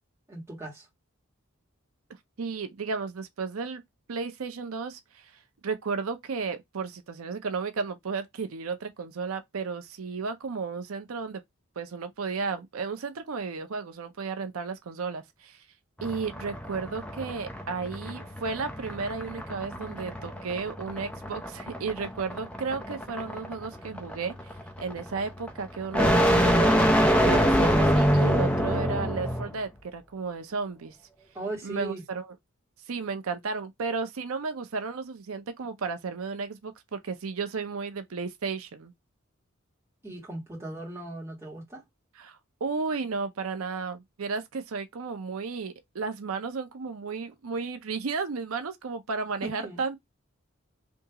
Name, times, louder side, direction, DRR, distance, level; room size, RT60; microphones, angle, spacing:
voice 1, 0.3-0.8 31.3-32.0 40.0-41.8 49.4-49.8, right 2 dB, 10° right, 1.5 m, -38 dB
voice 2, 2.4-3.8 4.1-5.3 5.6-11.4 11.8-15.6 16.0-24.3 24.8-26.7 27.2-31.0 31.6-32.3 32.9-38.9 42.2-50.0, right 4 dB, 90° right, 0.6 m, -33 dB
sound 1, 16.0-29.5, equal, 5° left, 0.5 m, -25 dB
3.5 x 2.8 x 2.8 m
head